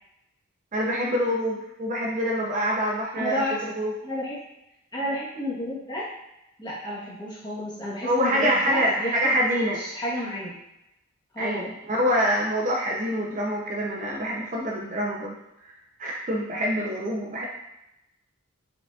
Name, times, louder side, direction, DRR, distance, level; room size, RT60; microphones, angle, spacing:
voice 1, 0.7-3.4 3.8-3.9 8.0-9.8 11.4-15.3 16.0-17.5, equal, 35° right, -2 dB, 0.5 m, -25 dB
voice 2, 3.1-3.6 4.0-4.4 4.9-6.1 6.6-9.4 9.7-10.5 11.3-11.7, left 1 dB, 20° left, -7 dB, 1.1 m, -31 dB
4.9 x 3.8 x 2.3 m, 0.87 s
head